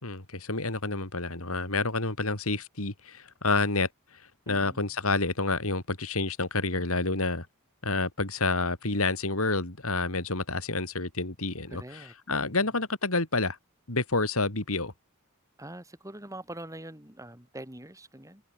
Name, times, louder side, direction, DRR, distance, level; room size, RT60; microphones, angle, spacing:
voice 1, 0.0-3.9 4.5-7.5 7.8-13.6 13.9-14.9, left 3 dB, 70° left, 3.8 m, -29 dB
voice 2, 4.5-4.8 11.7-12.1 15.6-18.4, right 1 dB, 15° right, 5.8 m, -43 dB
head